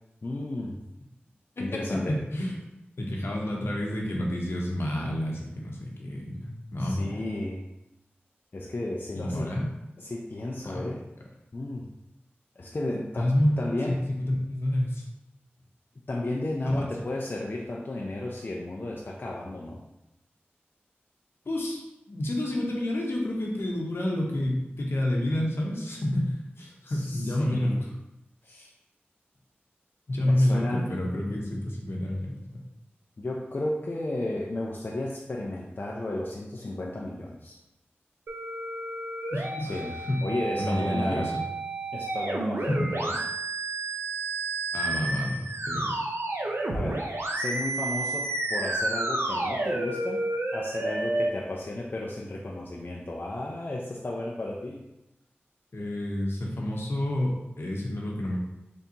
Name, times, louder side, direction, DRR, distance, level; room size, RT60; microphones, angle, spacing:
voice 1, 0.2-0.8 1.6-2.2 6.8-7.6 8.5-9.5 10.0-11.0 11.5-11.9 12.6-14.0 16.1-19.8 26.9-27.8 28.4-28.7 30.2-30.9 33.2-37.6 39.6-39.9 40.2-41.3 41.9-43.2 46.7-47.0 47.4-50.2 50.5-54.9, left 2 dB, 50° left, -3 dB, 0.5 m, -33 dB
voice 2, 1.6-2.6 3.0-7.1 9.1-9.7 10.6-10.9 13.2-13.5 14.0-15.0 16.7-16.8 21.4-21.8 22.1-27.9 30.1-32.6 39.3-40.2 40.6-41.4 42.7-42.9 44.7-45.9 55.7-58.4, left 1 dB, 75° left, -2 dB, 0.9 m, -29 dB
sound 1, 38.3-51.3, right 2 dB, 80° right, 0.5 m, -31 dB
4.0 x 3.5 x 2.9 m, 0.92 s
wide cardioid pair, 55°, 4 cm